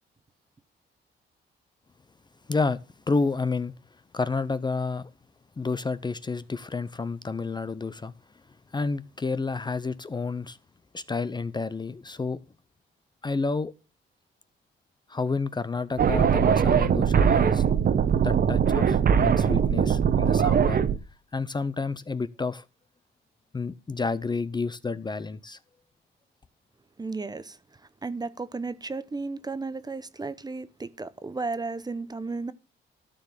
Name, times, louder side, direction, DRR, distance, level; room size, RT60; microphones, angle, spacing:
voice 1, 2.5-2.8 3.1-3.7 4.1-5.1 5.6-8.1 8.7-10.6 10.9-12.4 13.2-13.7 15.1-17.6 18.2-20.8 21.3-22.6 23.5-25.6, left 4 dB, 20° left, 0.6 m, -30 dB
sound 1, 16.0-21.0, right 7 dB, 50° right, 1.1 m, -21 dB
voice 2, 27.0-27.6 28.0-32.5, right 3 dB, 20° right, 0.8 m, -34 dB
13.0 x 4.7 x 7.2 m
cardioid pair, 90°, 20 cm